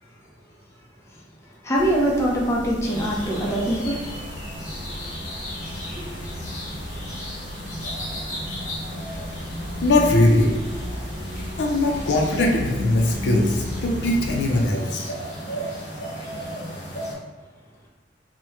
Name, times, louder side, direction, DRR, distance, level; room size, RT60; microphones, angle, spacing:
voice 1, 1.6-4.0 4.9-5.1 5.8-6.1, right 1 dB, 15° left, -4 dB, 0.5 m, -23 dB
sound 1, 1.7-14.7, left 1 dB, 90° right, 0.5 m, -34 dB
sound 2, 2.8-17.1, equal, 45° left, 0.9 m, -35 dB
voice 2, 9.8-10.5 11.6-15.1, left 1 dB, 75° left, 0 dB, 0.5 m, -20 dB
2.8 x 2.1 x 3.4 m, 1.3 s
head